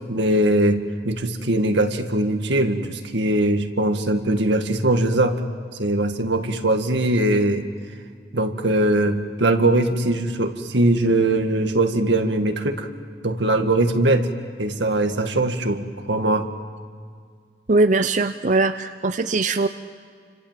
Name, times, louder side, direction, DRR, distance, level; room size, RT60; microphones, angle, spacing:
voice 1, 0.1-5.4 5.8-7.7 8.3-12.9 13.2-14.3 14.6-16.5, right 1 dB, 80° right, 6 dB, 1.9 m, -21 dB
voice 2, 17.7-19.7, right 3 dB, 45° right, 9 dB, 0.6 m, -20 dB
30.0 x 25.5 x 7.5 m, 2.1 s
head